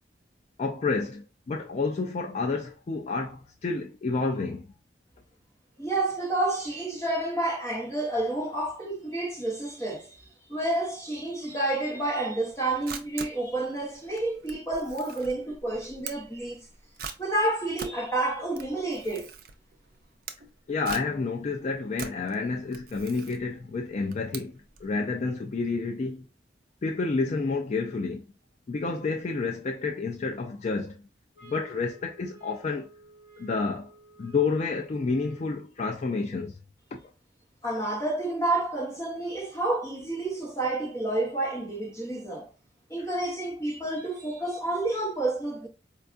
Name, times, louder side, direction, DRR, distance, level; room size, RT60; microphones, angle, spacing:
voice 1, 0.6-4.7 20.7-26.2 26.8-28.2 28.7-31.0 31.4-32.9 33.4-33.9 34.2-36.6 36.9-37.0 43.0-43.1, left 4 dB, 40° left, 0.3 m, -30 dB
voice 2, 5.8-16.6 17.2-19.3 37.6-42.5 42.9-45.7, right 2 dB, 15° left, 1.1 m, -29 dB
Camera, 12.5-24.9, right 6 dB, 55° right, 0.4 m, -43 dB
sound 1, 31.3-35.7, right 2 dB, 15° right, 1.3 m, -53 dB
4.4 x 2.3 x 2.5 m
head